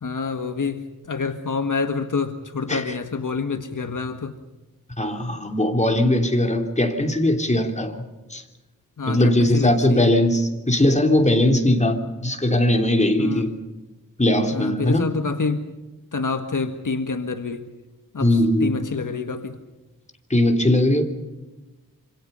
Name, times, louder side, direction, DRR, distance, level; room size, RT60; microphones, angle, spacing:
voice 1, 0.0-4.4 9.0-10.1 13.2-13.5 14.5-15.7 16.1-17.7 18.1-19.6, left 4 dB, 60° left, 1.7 m, -27 dB
voice 2, 5.0-8.0 8.3-8.4 9.1-13.5 14.2-15.1 18.2-18.8 20.3-21.0, left 1 dB, 20° left, 3.0 m, -20 dB
26.5 x 26.0 x 5.6 m
wide cardioid pair, 105°, 34 cm